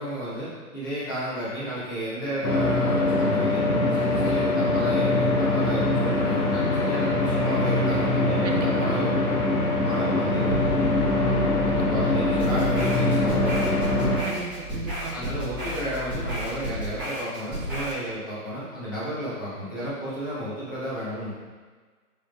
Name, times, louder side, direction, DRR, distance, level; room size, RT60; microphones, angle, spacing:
voice 1, 0.0-9.1 9.8-10.6 11.7-13.9 15.1-21.3, equal, 15° left, -10 dB, 0.6 m, -32 dB
sound 1, 2.4-14.2, left 2 dB, 80° left, 1.1 m, -23 dB
voice 2, 8.4-8.9 11.7-11.9 14.2-15.1, right 5 dB, 50° right, 3 dB, 0.6 m, -35 dB
sound 2, 10.5-17.0, left 2 dB, 45° left, 0.9 m, -36 dB
sound 3, 12.4-18.0, right 1 dB, 5° right, 0.9 m, -33 dB
5.0 x 3.9 x 2.3 m, 1.5 s
figure-of-eight pair, 135°, 45 cm